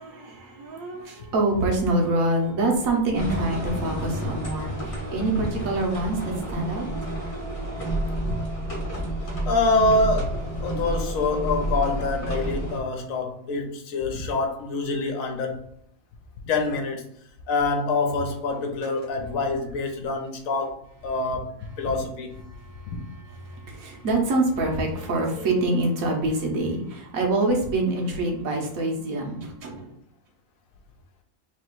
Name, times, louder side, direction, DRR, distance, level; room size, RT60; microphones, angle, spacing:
voice 1, 0.0-6.9 22.5-29.9, right 2 dB, 65° right, 1.3 m, -26 dB
sound 1, 3.1-12.8, right 1 dB, 25° left, 0.9 m, -30 dB
voice 2, 9.5-15.7 16.4-17.1 17.5-22.4 22.9-23.0, left 3 dB, 65° left, 1.1 m, -26 dB
3.3 x 3.0 x 4.5 m
omnidirectional pair, 1.7 m